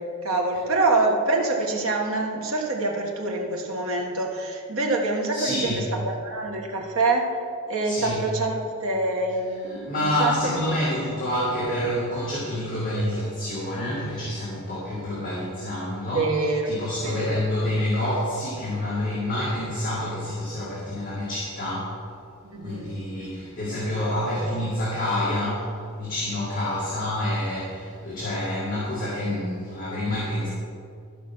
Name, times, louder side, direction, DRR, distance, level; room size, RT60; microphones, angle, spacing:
voice 1, 0.0-7.3 7.7-10.7 16.1-17.4 22.4-22.9 24.3-24.6, right 2 dB, 65° right, 0 dB, 1.5 m, -26 dB
voice 2, 5.3-5.9 7.8-8.3 9.7-16.3 16.7-22.0 22.6-30.5, left 1 dB, 40° left, -8 dB, 2.2 m, -28 dB
13.5 x 5.1 x 6.1 m, 2.3 s
head